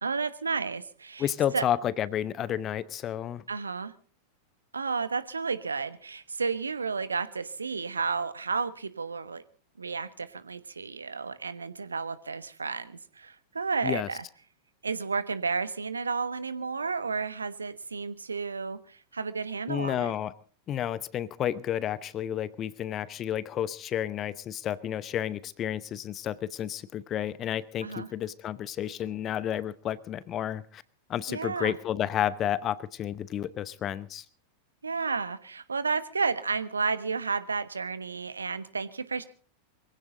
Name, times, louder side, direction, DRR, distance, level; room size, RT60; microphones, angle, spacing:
voice 1, 0.0-1.6 3.5-3.9 4.7-9.4 9.8-14.2 14.8-20.1 27.8-28.1 31.3-31.8 34.8-39.2, right 4 dB, 75° right, 14 dB, 1.1 m, -32 dB
voice 2, 1.2-3.4 13.8-14.1 19.7-20.3 20.7-30.8 31.1-34.2, left 10 dB, 30° left, 19 dB, 0.8 m, -31 dB
23.0 x 16.0 x 3.9 m, 0.41 s
figure-of-eight pair, 90°, 0 cm